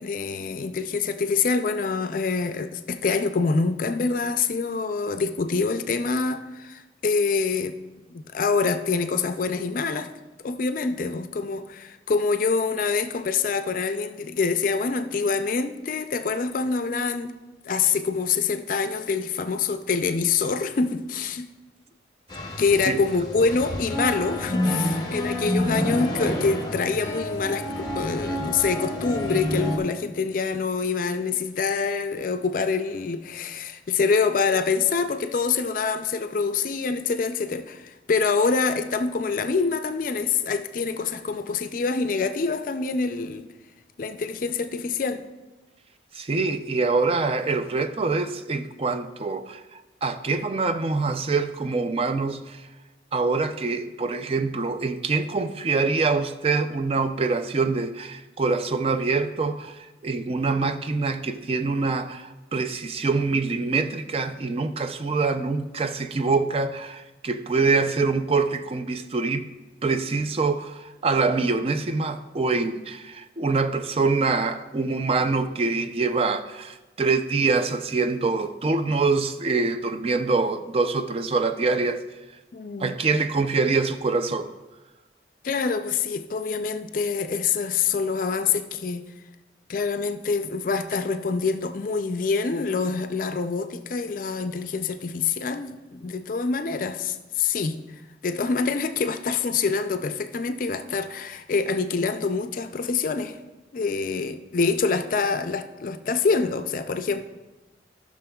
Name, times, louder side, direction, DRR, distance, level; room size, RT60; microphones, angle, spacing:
voice 1, 0.0-7.8 8.1-10.1 10.4-17.4 17.7-21.5 22.6-43.5 44.0-45.2 82.5-83.0 85.4-89.0 89.7-97.8 98.2-103.4 103.7-107.2, left 4 dB, 50° left, 0.4 m, -25 dB
sound 1, 22.3-29.8, left 1 dB, 20° left, 0.8 m, -28 dB
voice 2, 46.1-49.6 50.0-52.6 53.1-69.5 69.8-82.0 82.8-84.5, right 4 dB, 35° right, 0.4 m, -25 dB
14.0 x 6.1 x 2.3 m
head